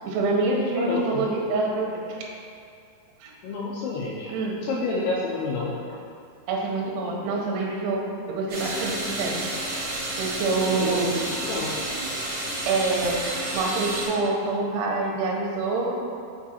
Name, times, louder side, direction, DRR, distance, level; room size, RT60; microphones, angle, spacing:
voice 1, 0.0-2.2 3.2-3.3 4.3-4.6 6.5-8.0 8.3-9.4 10.2-11.3 12.7-13.2 13.5-16.0, right 3 dB, 75° right, -1 dB, 2.6 m, -26 dB
voice 2, 0.8-1.2 3.4-4.3 4.7-5.7 10.5-11.0 11.4-11.7, left 3 dB, 85° left, -5 dB, 2.4 m, -29 dB
sound 1, 8.5-14.1, right 1 dB, 55° right, 2.0 m, -30 dB
6.9 x 4.8 x 2.8 m, 2.4 s
omnidirectional pair, 5.2 m